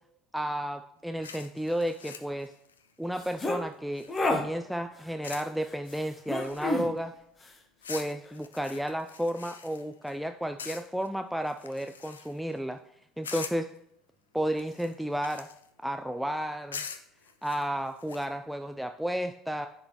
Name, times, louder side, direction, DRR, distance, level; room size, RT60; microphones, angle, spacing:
voice 1, 0.3-2.5 3.0-7.1 7.9-12.8 13.2-13.7 14.3-15.5 15.8-16.8 17.4-19.7, equal, ahead, 6 dB, 0.3 m, -32 dB
sound 1, 1.2-4.5 5.2-5.6 5.8-7.0 7.8-10.2 10.6-11.1 11.5-12.5 13.2-13.8 14.5-15.7 16.7-18.3, left 6 dB, 85° left, 0.4 m, -44 dB
sound 2, 3.2-3.6 4.1-4.4 6.3-6.9, left 2 dB, 25° left, 0.9 m, -28 dB
9.8 x 3.8 x 3.0 m, 0.74 s
hypercardioid pair, 65°, 0 cm